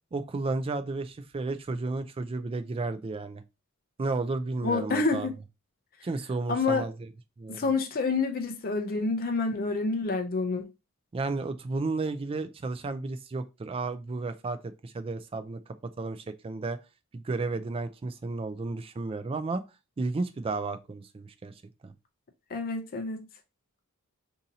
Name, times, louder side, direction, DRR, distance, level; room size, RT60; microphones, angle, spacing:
voice 1, 0.1-3.4 4.0-5.3 6.0-7.1 7.4-7.7 11.1-15.6 16.0-16.8 17.1-19.6 20.0-21.5 21.8-21.9, right 3 dB, 25° right, 0.3 m, -33 dB
voice 2, 4.6-5.3 6.5-6.9 7.5-10.6 22.5-23.3, left 3 dB, 40° left, 0.5 m, -28 dB
2.7 x 2.6 x 3.9 m
head